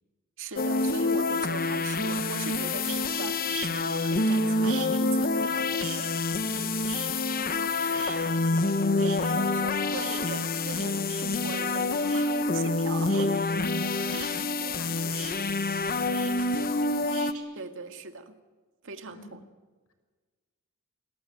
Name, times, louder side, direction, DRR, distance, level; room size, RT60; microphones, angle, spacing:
voice 1, 0.4-5.7 5.9-6.3 9.0-13.4 14.1-14.7 17.6-18.4 18.8-19.4, right 4 dB, 60° right, 7 dB, 2.0 m, -40 dB
sound 1, 0.6-17.3, left 3 dB, 40° left, 1.0 m, -27 dB
sound 2, 2.9-3.2 3.5-4.4 4.6-6.6 6.9-7.7 7.9-8.7 9.0-17.4, right 11 dB, 80° right, 6.5 m, -42 dB
voice 2, 6.3-6.7 7.4-9.3 14.6-17.1 19.1-19.3, left 2 dB, 75° left, 7 dB, 5.3 m, -48 dB
27.5 x 18.5 x 9.2 m, 1.4 s
head